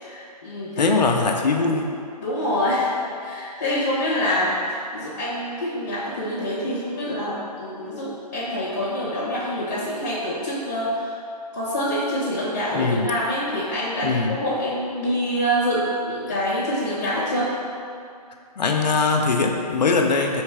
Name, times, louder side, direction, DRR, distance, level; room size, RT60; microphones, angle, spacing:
voice 1, 0.0-0.9 2.2-4.6 4.9-11.2 11.5-17.5, equal, 20° left, -8 dB, 0.5 m, -26 dB
voice 2, 0.8-1.9 12.7-13.1 14.0-14.4 18.6-20.4, left 4 dB, 85° left, 2 dB, 0.6 m, -21 dB
3.2 x 3.1 x 4.6 m, 2.4 s
hypercardioid pair, 175°, 21 cm